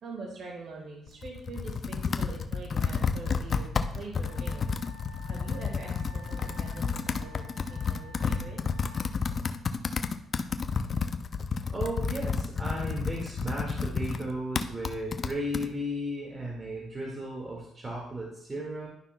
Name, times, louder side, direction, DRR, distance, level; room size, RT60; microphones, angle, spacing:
voice 1, 0.0-3.7 3.9-4.8 5.3-7.4 7.7-8.6, right 3 dB, 60° right, -1 dB, 1.6 m, -43 dB
Computer keyboard, 1.1-15.7, left 5 dB, 45° left, 0.5 m, -31 dB
Wind instrument woodwind instrument, 4.2-9.1, left 4 dB, 85° right, 2.1 m, -51 dB
voice 2, 11.7-18.9, equal, 25° right, -3 dB, 1.8 m, -35 dB
11.5 x 5.6 x 2.2 m, 0.73 s
cardioid pair, 90°, 0 cm